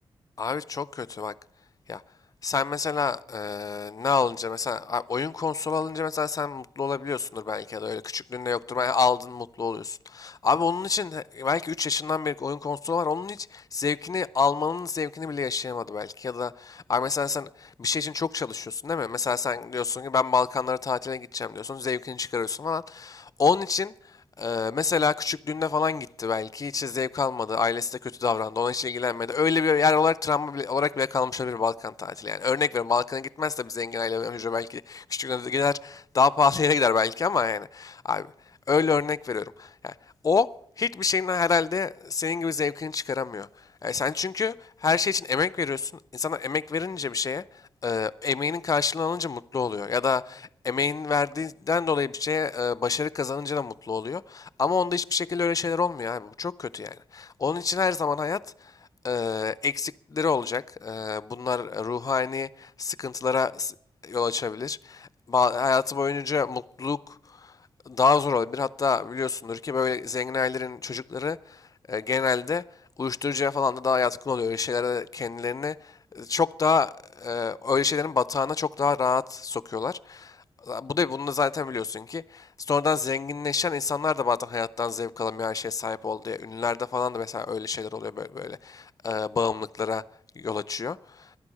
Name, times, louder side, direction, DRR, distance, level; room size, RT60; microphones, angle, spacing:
voice 1, 0.4-1.3 1.9-2.0 2.4-23.9 24.4-38.3 38.7-39.9 40.2-40.5 40.8-43.5 43.8-44.5 44.8-47.4 47.8-58.4 59.0-63.7 64.0-67.2 67.4-67.5 67.9-71.6 71.9-72.6 73.0-80.4 80.6-90.0 90.4-91.3, left 5 dB, 40° left, 0.5 m, -27 dB
12.0 x 11.0 x 9.8 m
wide cardioid pair, 105°, 10 cm